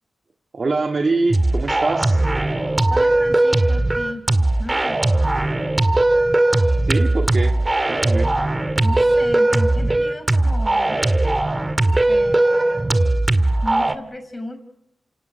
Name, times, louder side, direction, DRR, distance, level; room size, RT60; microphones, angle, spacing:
voice 1, 0.5-2.3 6.8-7.5 7.9-8.3, right 3 dB, 55° right, 3 dB, 2.0 m, -24 dB
sound 1, 1.3-13.9, right 2 dB, 30° right, 1.8 m, -18 dB
voice 2, 2.9-4.3 4.6-5.3 8.8-11.1 12.1-13.0 13.6-14.6, left 1 dB, 30° left, 9 dB, 6.1 m, -34 dB
30.0 x 18.0 x 8.3 m, 0.87 s
cardioid pair, 45°, 0 cm